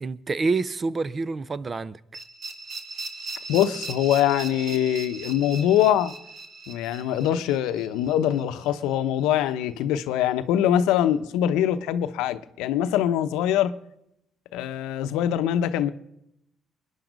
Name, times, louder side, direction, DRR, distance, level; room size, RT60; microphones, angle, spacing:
voice 1, 0.0-2.0, right 3 dB, 35° right, 0.6 m, -27 dB
sound 1, 2.1-8.9, right 3 dB, 55° right, 2.0 m, -39 dB
voice 2, 3.5-6.1 6.7-13.7 14.5-15.9, left 10 dB, 85° left, 0.7 m, -23 dB
22.5 x 9.8 x 5.2 m
supercardioid pair, 65°, 0 cm